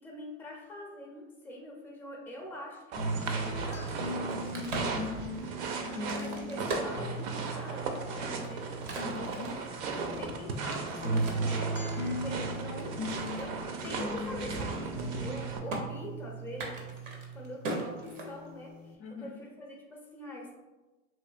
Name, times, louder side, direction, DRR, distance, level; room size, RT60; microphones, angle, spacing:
voice 1, 0.0-4.5 5.6-8.7 9.4-9.5 10.2-13.5 13.8-16.9 17.3-20.6, left 1 dB, 5° left, -1 dB, 0.6 m, -44 dB
sound 1, 2.9-15.6, right 4 dB, 50° right, 0.5 m, -37 dB
sound 2, 3.0-9.6 10.0-17.6 18.0-19.0, right 1 dB, 85° left, 0.7 m, -37 dB
Crack, 4.2-7.7 8.2-11.5 12.1-13.5 13.8-13.9 14.2-14.6 14.8-15.4 15.7-15.8 16.5-18.7, right 2 dB, 85° right, 0.8 m, -40 dB
voice 2, 4.3-5.1 5.4-5.5 5.8-6.1 9.0-9.6 19.0-19.4, left 5 dB, 50° left, 2 dB, 0.5 m, -42 dB
3.1 x 2.7 x 2.4 m, 1.1 s
hypercardioid pair, 95°, 37 cm